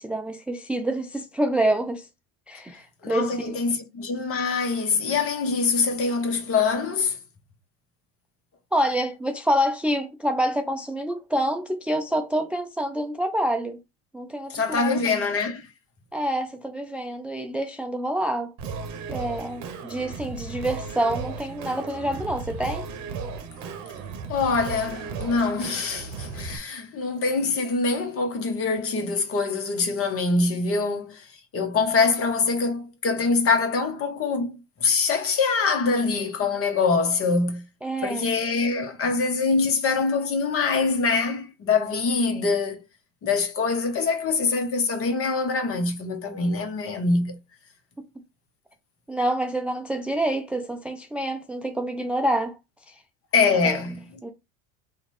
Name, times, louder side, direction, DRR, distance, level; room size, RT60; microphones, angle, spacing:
voice 1, 0.0-2.1 2.5-3.6 8.7-13.8 14.1-15.0 16.1-18.5 19.1-22.8 37.8-38.3 48.0-48.1 49.1-52.6 52.9-53.0 53.6-53.8 54.2-54.3, right 1 dB, 5° right, 0.4 m, -27 dB
voice 2, 3.0-7.2 14.5-15.7 24.3-31.3 31.5-37.6 38.0-42.8 43.2-47.4 53.3-54.0, left 4 dB, 40° left, 1.2 m, -24 dB
Singing, 18.6-26.6, right 5 dB, 50° right, 0.9 m, -35 dB
2.9 x 2.5 x 4.2 m
hypercardioid pair, 85°, 36 cm